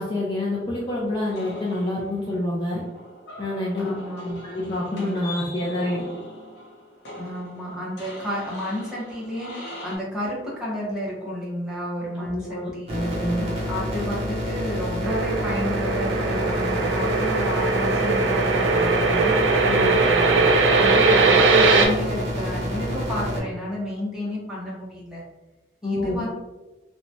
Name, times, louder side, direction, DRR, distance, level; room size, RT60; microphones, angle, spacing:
voice 1, 0.0-2.8 3.4-6.0 12.2-13.5 19.6-20.0 25.8-26.2, left 1 dB, 25° left, -5 dB, 0.4 m, -27 dB
sound 1, 1.3-10.0, left 1 dB, 65° left, 0.7 m, -41 dB
voice 2, 3.8-4.4 7.2-13.0 13.7-19.4 19.9-25.2 25.8-26.3, left 1 dB, 5° right, -7 dB, 0.9 m, -31 dB
sound 2, 12.9-23.4, equal, 35° right, 0.7 m, -28 dB
sound 3, 15.0-21.9, right 3 dB, 90° right, 0.4 m, -20 dB
2.9 x 2.2 x 2.6 m, 1.1 s
head